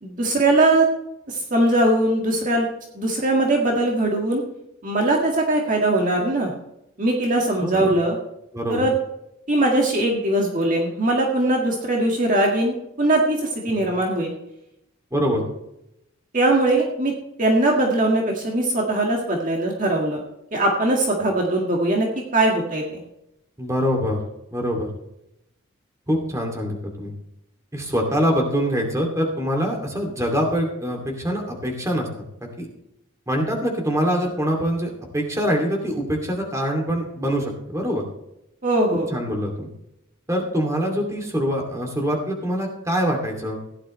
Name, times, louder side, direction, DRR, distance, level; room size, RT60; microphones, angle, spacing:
voice 1, 0.0-0.9 1.3-2.7 2.9-4.4 4.8-6.5 7.0-8.2 8.7-8.9 9.5-14.3 16.3-17.1 17.4-20.2 20.5-22.1 22.3-23.0 38.6-39.1, right 1 dB, 40° right, -1 dB, 1.9 m, -20 dB
voice 2, 7.6-7.9 8.5-8.9 13.7-13.8 15.1-15.4 23.6-24.2 24.5-24.9 26.1-27.1 27.7-32.7 33.3-38.0 39.1-39.7 40.3-43.6, equal, 15° right, 1 dB, 2.7 m, -24 dB
16.5 x 11.5 x 3.3 m, 0.82 s
head